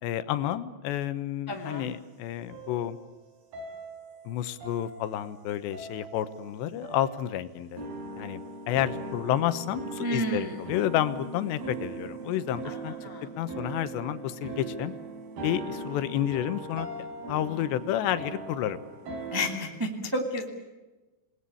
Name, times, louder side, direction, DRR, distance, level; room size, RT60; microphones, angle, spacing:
voice 1, 0.0-3.0 4.3-7.9 8.2-12.9 13.2-14.9 15.4-16.9 17.3-18.8, left 12 dB, 80° left, 12 dB, 3.2 m, -30 dB
voice 2, 1.5-2.0 10.0-10.5 12.6-13.3 19.3-20.4, equal, 15° right, 3 dB, 0.7 m, -31 dB
sound 1, 2.5-3.2 3.5-4.3 4.6-5.4 5.7-6.5 6.8-7.3 7.8-19.5, right 2 dB, 60° right, 6.0 m, -40 dB
27.5 x 19.5 x 8.6 m, 1.1 s
omnidirectional pair, 5.1 m